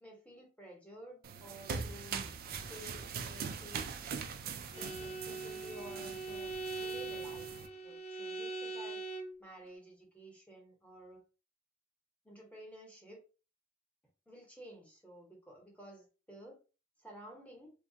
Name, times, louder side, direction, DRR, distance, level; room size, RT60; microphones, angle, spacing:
voice 1, 0.0-2.3 2.7-3.9 4.5-7.5 7.8-9.0 9.4-11.2 12.2-13.2 14.3-16.6 17.0-17.7, right 1 dB, 5° left, -1 dB, 0.9 m, -53 dB
sound 1, 1.2-7.7, right 6 dB, 45° right, 0.3 m, -42 dB
Bowed string instrument, 4.7-9.4, right 3 dB, 30° left, 0.4 m, -41 dB
2.8 x 2.2 x 2.7 m, 0.34 s
head